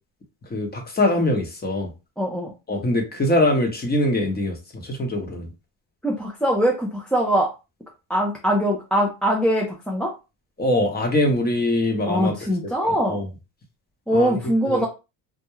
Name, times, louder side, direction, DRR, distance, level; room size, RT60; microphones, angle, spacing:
voice 1, 0.5-1.9 2.7-5.5 10.6-12.3 12.8-13.3 14.1-14.4 14.7-14.9, left 1 dB, 20° left, 3 dB, 0.8 m, -23 dB
voice 2, 2.2-2.5 6.0-7.5 8.1-10.1 12.1-13.2 14.1-14.9, equal, ahead, -2 dB, 0.4 m, -22 dB
2.3 x 2.1 x 3.0 m, 0.28 s
cardioid pair, 105°, 48 cm